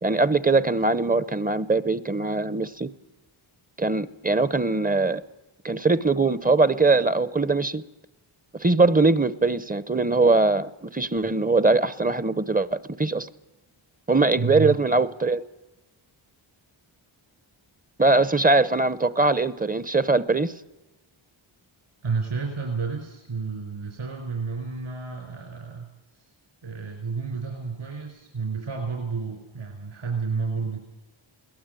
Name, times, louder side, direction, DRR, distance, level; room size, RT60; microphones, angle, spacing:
voice 1, 0.0-2.9 3.8-5.2 5.6-7.8 8.6-13.3 14.1-15.4 18.0-20.5, right 3 dB, 15° right, 16 dB, 0.8 m, -21 dB
voice 2, 14.4-14.8 22.0-25.9 26.1-26.3 26.6-30.8, right 5 dB, 65° right, 3 dB, 4.6 m, -31 dB
22.0 x 18.5 x 9.1 m, 1.1 s
wide cardioid pair, 115°, 49 cm